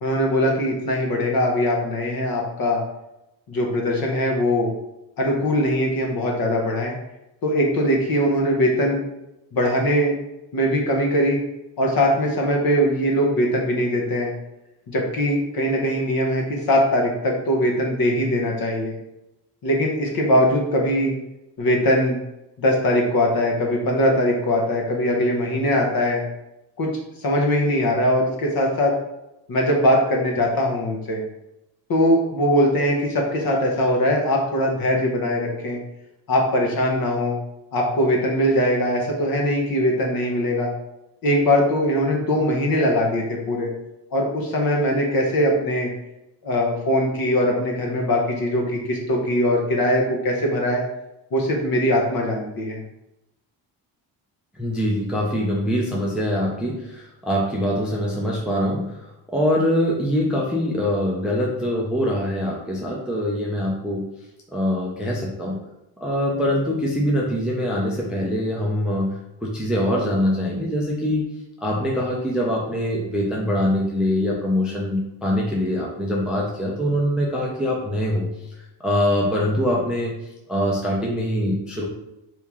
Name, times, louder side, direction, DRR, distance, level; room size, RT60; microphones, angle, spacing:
voice 1, 0.0-2.8 3.5-4.7 5.2-6.9 7.4-9.0 9.5-10.2 10.5-11.4 11.8-14.3 14.9-19.0 19.6-21.1 21.6-22.2 22.6-26.2 26.8-26.9 27.2-28.9 29.5-31.2 31.9-35.8 36.3-37.4 37.7-40.7 41.2-43.7 44.1-45.9 46.4-50.8 51.3-52.8, equal, 50° left, 0 dB, 0.9 m, -21 dB
voice 2, 54.5-59.0 59.3-64.0 64.5-65.6 66.0-69.1 69.4-71.2 71.6-78.4 78.8-80.1 80.5-81.9, equal, ahead, -3 dB, 0.4 m, -23 dB
3.0 x 2.7 x 3.6 m, 0.91 s
cardioid pair, 140°, 47 cm